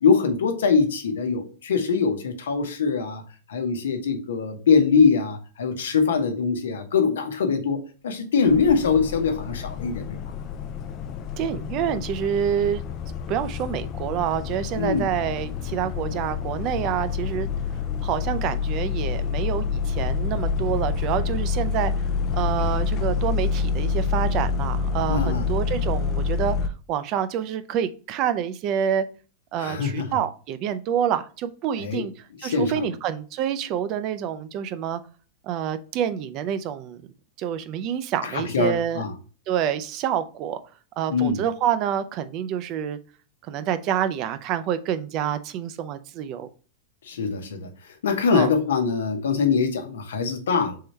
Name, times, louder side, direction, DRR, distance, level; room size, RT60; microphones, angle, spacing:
voice 1, 0.0-3.2 3.5-7.8 8.0-10.2 14.8-15.0 25.1-25.5 29.6-30.1 31.8-32.0 32.4-32.9 38.2-39.1 41.1-41.4 47.1-47.7 48.0-50.8, left 5 dB, 85° left, 0.9 m, -23 dB
sound 1, 8.5-26.7, left 5 dB, 40° left, 0.5 m, -27 dB
voice 2, 11.4-12.9 13.3-17.5 18.0-21.9 22.3-29.1 29.5-35.0 35.4-37.0 37.4-39.0 39.5-40.6 41.0-43.0 43.5-46.5 48.3-48.5, right 9 dB, 45° right, 0.5 m, -27 dB
3.7 x 3.3 x 4.0 m
hypercardioid pair, 120°, 0 cm